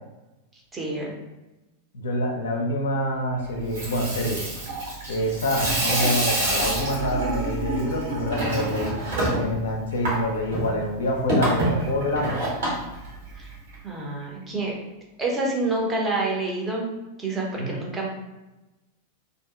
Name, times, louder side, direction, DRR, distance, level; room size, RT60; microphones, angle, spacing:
voice 1, 0.7-1.1 13.4-13.5 13.8-14.7 15.2-16.9 17.2-18.1, right 2 dB, 15° right, -2 dB, 0.7 m, -27 dB
voice 2, 1.9-4.4 5.1-9.0 9.3-12.4 17.6-17.8, left 1 dB, 65° left, 1 dB, 0.5 m, -26 dB
Water tap faucet / Sink (filling or washing), 3.6-13.8, right 1 dB, 60° right, 1.2 m, -27 dB
2.6 x 2.5 x 2.4 m, 1.0 s
figure-of-eight pair, 90°, 0 cm